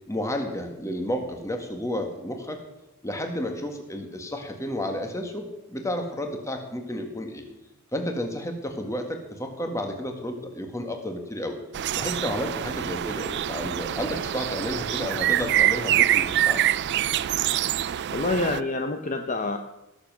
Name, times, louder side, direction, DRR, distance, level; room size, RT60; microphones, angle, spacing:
voice 1, 0.1-2.6 3.0-7.5 7.9-11.6 11.9-16.6, left 1 dB, 15° left, 4 dB, 1.7 m, -31 dB
sound 1, 11.7-18.6, right 12 dB, 50° right, 0.4 m, -25 dB
voice 2, 18.1-19.6, left 2 dB, 35° left, 5 dB, 0.8 m, -27 dB
18.0 x 7.2 x 6.2 m, 0.91 s
head